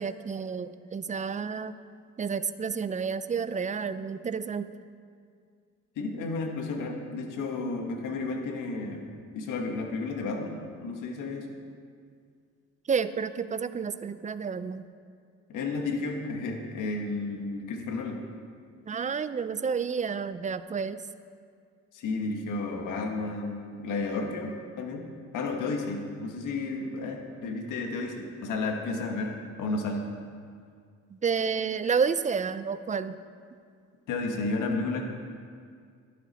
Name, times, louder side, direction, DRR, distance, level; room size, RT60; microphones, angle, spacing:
voice 1, 0.0-1.7 2.2-4.7 12.9-14.9 18.9-21.0 31.2-33.2, right 6 dB, 25° right, 13 dB, 0.5 m, -30 dB
voice 2, 6.0-9.1 9.3-11.5 15.5-18.2 21.9-25.1 25.3-30.0 34.1-35.0, left 3 dB, 90° left, 3 dB, 1.5 m, -32 dB
11.5 x 11.5 x 4.2 m, 2.1 s
cardioid pair, 90°, 30 cm